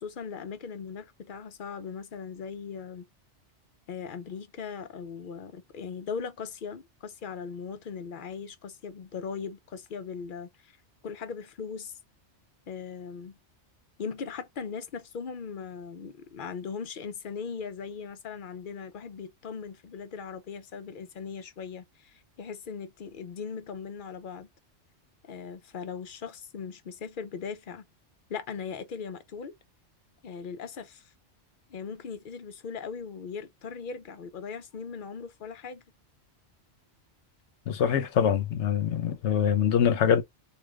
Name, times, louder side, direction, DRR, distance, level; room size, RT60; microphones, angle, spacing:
voice 1, 0.0-3.1 3.9-10.8 11.0-12.0 12.7-13.4 14.0-24.5 25.3-27.9 28.3-29.5 30.2-31.1 31.7-35.8, left 6 dB, 55° left, 0.7 m, -39 dB
voice 2, 37.7-40.2, left 8 dB, 80° left, 1.0 m, -24 dB
3.2 x 2.5 x 3.5 m
omnidirectional pair, 1.2 m